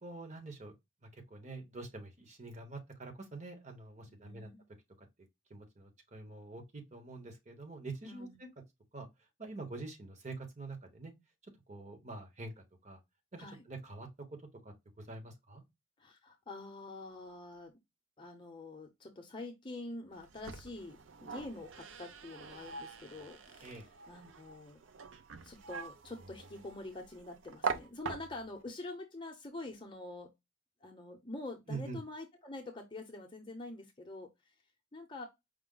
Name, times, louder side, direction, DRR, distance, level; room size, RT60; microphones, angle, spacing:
voice 1, 0.0-0.7 1.1-4.5 5.0-5.1 5.5-8.5 8.9-9.1 9.4-11.1 11.4-13.0 13.3-14.4 14.6-15.6 23.6-23.8 31.7-32.0, right 3 dB, 40° right, 1.1 m, -46 dB
voice 2, 4.2-4.6 8.0-8.4 13.4-13.6 16.0-17.7 18.2-23.8 24.1-24.8 25.4-30.3 30.8-34.3 34.9-35.3, left 2 dB, 25° left, 0.7 m, -46 dB
sound 1, 20.1-28.6, right 5 dB, 90° right, 0.6 m, -43 dB
5.0 x 2.1 x 3.8 m
head